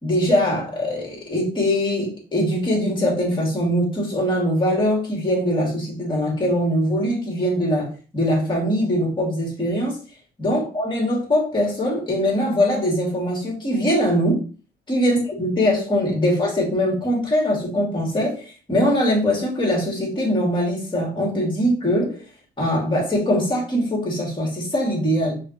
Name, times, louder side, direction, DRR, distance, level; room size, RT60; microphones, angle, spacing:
voice 1, 0.0-10.0 10.4-14.4 14.9-22.2 22.6-25.3, equal, 25° left, -2 dB, 2.2 m, -22 dB
5.4 x 2.4 x 3.0 m, 0.37 s
cardioid pair, 90°, 20 cm